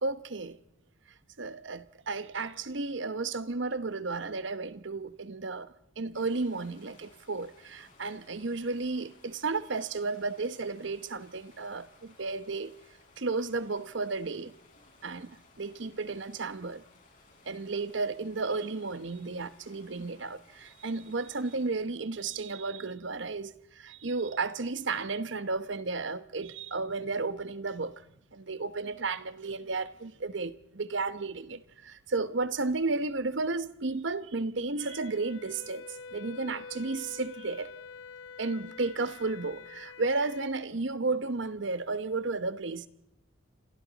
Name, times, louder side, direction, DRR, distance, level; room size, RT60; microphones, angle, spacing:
voice 1, 0.0-0.6 1.4-12.7 13.2-14.5 15.0-16.8 17.5-28.0 28.3-35.8 36.1-37.7 38.4-42.9, right 3 dB, 65° right, 0.9 m, -33 dB
sound 1, 6.1-21.7, left 3 dB, 40° left, 6.5 m, -60 dB
Wind instrument woodwind instrument, 34.8-40.5, left 4 dB, 70° left, 1.1 m, -46 dB
29.5 x 26.5 x 4.1 m
head